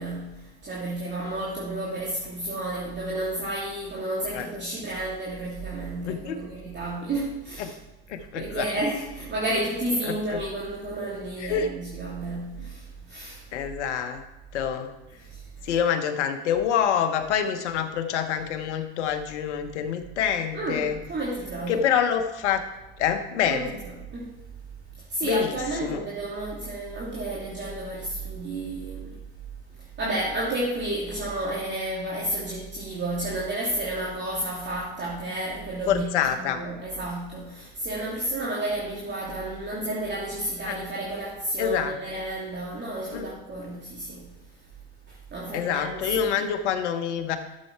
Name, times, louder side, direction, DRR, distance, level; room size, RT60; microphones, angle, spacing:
voice 1, 0.0-7.7 8.3-13.5 15.2-15.5 20.5-21.8 23.5-23.7 24.1-24.3 25.0-29.1 29.8-44.3 45.1-46.3, right 1 dB, 30° right, -5 dB, 2.8 m, -31 dB
voice 2, 6.1-6.4 7.6-7.7 8.1-8.8 10.1-10.4 11.4-11.7 13.5-14.2 14.5-14.9 15.6-21.0 21.7-22.6 23.0-23.7 25.2-25.6 25.8-26.0 35.9-36.6 40.6-40.8 41.6-41.9 43.1-43.3 45.5-47.4, left 8 dB, 85° left, 8 dB, 1.2 m, -26 dB
12.0 x 7.7 x 4.6 m, 1.1 s
hypercardioid pair, 85°, 34 cm